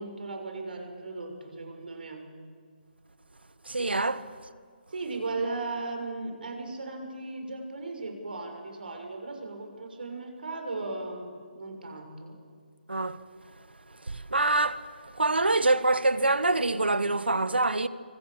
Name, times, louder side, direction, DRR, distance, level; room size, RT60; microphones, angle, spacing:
voice 1, 0.0-2.3 4.9-12.4, right 3 dB, 65° right, 6.4 m, -36 dB
voice 2, 3.7-4.2 12.9-13.2 14.1-14.8 15.2-17.9, right 2 dB, 85° right, 1.4 m, -25 dB
27.5 x 24.5 x 7.4 m
figure-of-eight pair, 150°, 5 cm